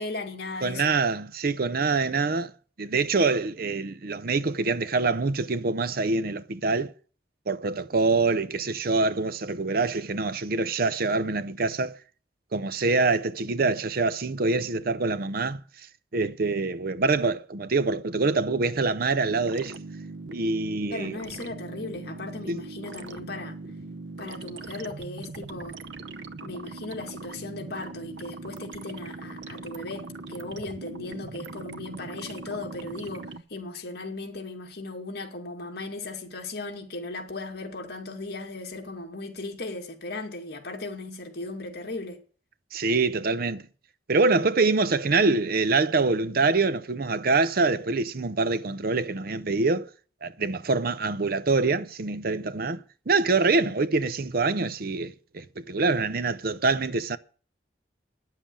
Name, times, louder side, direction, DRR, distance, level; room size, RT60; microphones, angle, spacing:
voice 1, 0.0-1.0 20.9-23.6 24.2-25.8 26.4-42.2, left 2 dB, 60° left, 2.4 m, -37 dB
voice 2, 0.6-2.5 2.8-6.9 7.5-12.0 12.5-15.6 16.1-19.7 20.3-21.2 22.5-22.6 42.7-43.6 44.1-49.9 50.2-57.2, right 3 dB, 55° right, 0.7 m, -25 dB
sound 1, 19.2-33.4, right 3 dB, 90° right, 0.8 m, -40 dB
10.0 x 7.5 x 9.0 m
head